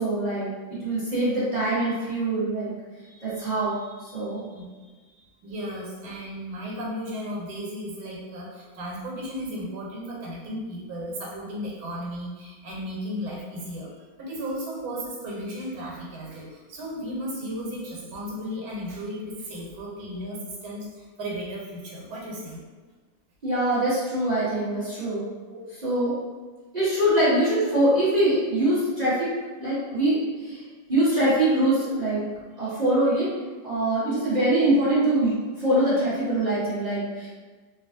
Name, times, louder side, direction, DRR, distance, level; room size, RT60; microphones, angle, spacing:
voice 1, 0.0-2.7 3.0-4.5 23.4-25.3 25.8-26.1 26.7-29.3 29.6-30.6 30.9-32.2 32.6-33.3 33.6-37.3, right 1 dB, 30° right, -12 dB, 0.9 m, -23 dB
voice 2, 5.4-13.9 14.2-22.6 25.5-25.6, equal, 85° right, -3 dB, 1.6 m, -35 dB
3.2 x 2.4 x 2.6 m, 1.4 s
omnidirectional pair, 2.1 m